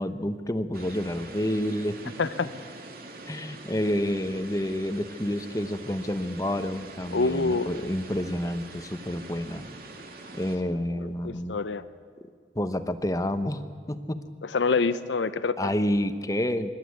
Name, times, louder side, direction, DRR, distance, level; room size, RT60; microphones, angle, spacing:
voice 1, 0.0-2.1 3.3-9.7 10.3-11.6 12.5-13.6 13.9-14.2 15.6-16.7, left 1 dB, 20° left, 10 dB, 0.9 m, -29 dB
sound 1, 0.7-10.6, right 2 dB, 50° right, 2.5 m, -44 dB
voice 2, 7.1-7.9 10.7-10.8 11.2-11.8 14.5-15.7, left 4 dB, 75° left, 14 dB, 0.7 m, -26 dB
25.0 x 12.5 x 9.5 m, 2.1 s
head